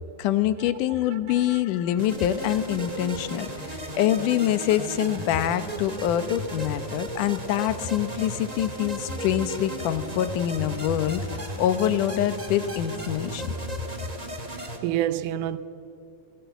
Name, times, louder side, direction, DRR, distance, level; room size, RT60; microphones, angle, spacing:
voice 1, 0.2-13.5, left 11 dB, 90° left, 2.5 m, -25 dB
voice 2, 1.1-1.5 14.8-15.6, right 12 dB, 85° right, 2.3 m, -28 dB
sound 1, 2.0-14.8, right 1 dB, 15° right, 1.7 m, -35 dB
27.5 x 18.5 x 8.2 m
omnidirectional pair, 3.5 m